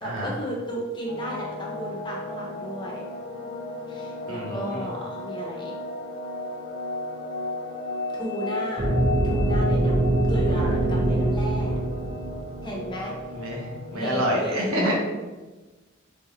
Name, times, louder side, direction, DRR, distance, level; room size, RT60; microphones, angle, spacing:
voice 1, 0.0-3.0 3.9-5.7 8.1-8.9 9.2-11.7 12.6-13.1 13.9-14.9, equal, 25° left, -2 dB, 0.9 m, -34 dB
sound 1, 1.1-14.3, left 2 dB, 70° left, 0.5 m, -34 dB
voice 2, 4.3-4.9 10.5-10.8 13.3-14.9, equal, 90° right, -2 dB, 1.1 m, -28 dB
sound 2, 8.8-12.9, right 1 dB, 30° right, 0.6 m, -23 dB
3.4 x 3.3 x 3.9 m, 1.2 s
head